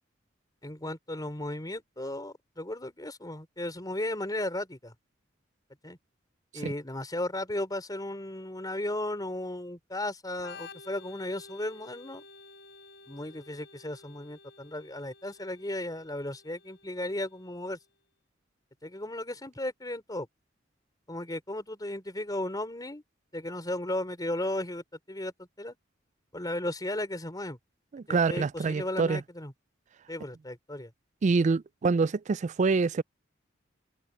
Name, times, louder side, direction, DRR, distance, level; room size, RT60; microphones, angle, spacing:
voice 1, 0.6-4.9 5.8-6.0 6.5-12.2 13.1-17.8 18.8-20.3 21.1-23.0 23.3-25.8 26.3-27.6 28.1-29.5 30.1-30.9, left 1 dB, 20° left, 3.9 m, -35 dB
Organ, 10.4-17.9, left 3 dB, 65° left, 3.9 m, -52 dB
voice 2, 27.9-29.2 31.2-33.0, right 4 dB, 40° right, 0.3 m, -26 dB
head